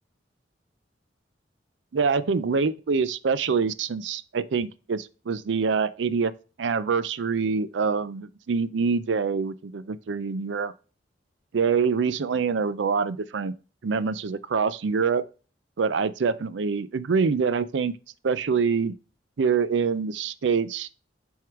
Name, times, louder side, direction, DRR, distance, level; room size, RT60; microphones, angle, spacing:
voice 1, 1.9-6.3 6.6-10.7 11.5-13.5 13.8-15.2 15.8-17.9 18.2-18.9 19.4-20.9, right 5 dB, 80° right, 0.5 m, -25 dB
7.6 x 3.7 x 4.5 m
head